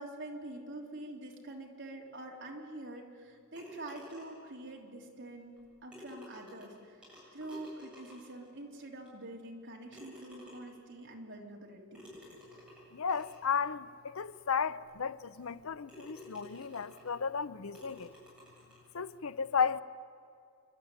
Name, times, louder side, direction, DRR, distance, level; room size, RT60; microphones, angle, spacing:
voice 1, 0.0-7.0 7.3-12.1, right 1 dB, 55° right, 3.2 m, -46 dB
sound 1, 3.5-4.5 5.6-5.7 5.9-8.5 9.1-9.2 9.9-10.9 11.9-13.5 14.2-14.3 14.8-14.9 15.4-15.6 15.9-17.2 17.7-18.9, left 1 dB, 5° right, 7.8 m, -52 dB
voice 2, 12.9-18.1 18.9-19.8, left 6 dB, 75° left, 0.6 m, -34 dB
28.0 x 12.0 x 9.7 m
head